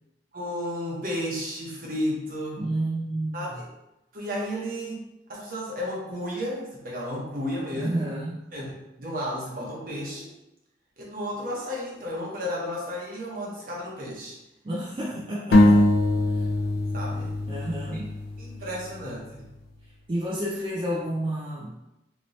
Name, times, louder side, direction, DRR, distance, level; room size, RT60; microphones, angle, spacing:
voice 1, 0.3-2.6 3.3-3.6 4.1-5.0 5.3-7.9 8.5-8.7 9.0-10.3 11.0-14.4 15.5-15.6 16.9-17.4 17.9-18.0 18.4-19.5, equal, 50° right, -4 dB, 0.9 m, -33 dB
voice 2, 2.6-3.6 7.7-8.4 14.6-15.8 16.3-16.5 17.5-18.1 18.6-18.7 20.1-21.9, right 1 dB, 30° right, -5 dB, 0.4 m, -30 dB
sound 1, 15.5-19.1, left 1 dB, 60° left, 0.4 m, -22 dB
2.9 x 2.7 x 3.0 m, 0.90 s
head